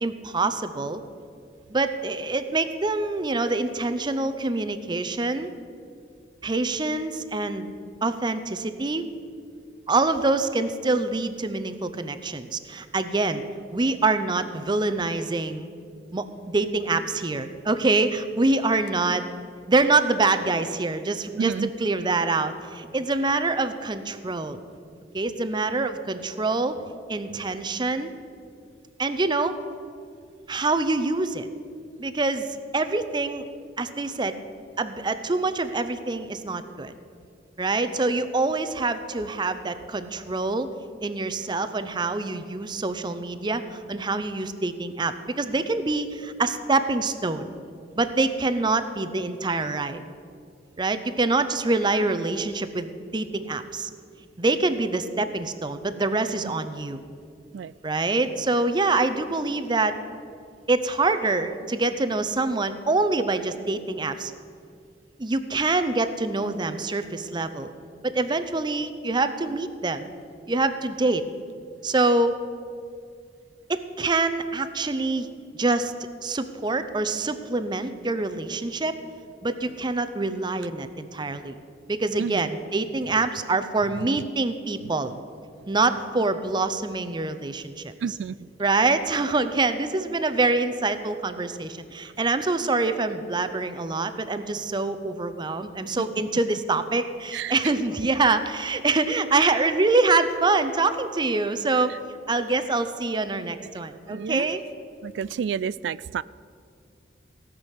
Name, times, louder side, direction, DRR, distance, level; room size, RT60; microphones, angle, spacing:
voice 1, 0.0-1.0 1.7-5.5 6.4-7.7 8.0-9.1 9.9-13.5 13.7-15.7 16.1-19.2 19.7-24.6 25.1-26.8 27.1-28.1 29.0-29.5 30.5-31.5 32.0-32.5 32.7-33.5 33.8-34.4 34.8-36.9 37.6-40.7 41.0-47.5 48.0-50.0 50.8-53.9 54.4-57.0 57.8-59.9 60.7-64.3 65.2-67.7 68.0-70.1 70.5-71.2 71.8-72.4 73.7-75.3 75.6-75.9 76.2-78.9 79.4-81.6 81.9-85.1 85.7-87.9 88.6-101.9 102.3-104.6, right 3 dB, 25° right, 10 dB, 0.6 m, -25 dB
voice 2, 21.4-21.7 56.4-56.5 57.5-57.7 82.2-82.4 88.0-88.5 97.3-97.5 104.1-104.5 105.0-106.2, right 7 dB, 75° right, 20 dB, 0.3 m, -29 dB
17.0 x 6.2 x 8.2 m, 2.3 s
head